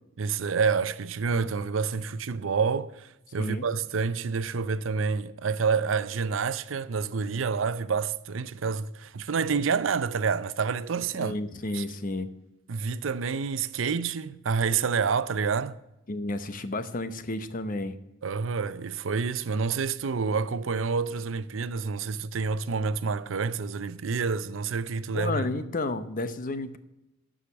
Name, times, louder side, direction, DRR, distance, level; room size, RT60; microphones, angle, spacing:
voice 1, 0.2-11.4 11.7-11.8 12.7-15.8 18.2-25.5, right 5 dB, 80° right, 0.5 m, -28 dB
voice 2, 11.2-12.3 16.1-18.0 25.1-26.8, left 2 dB, 45° left, 0.8 m, -31 dB
13.0 x 5.0 x 7.0 m
head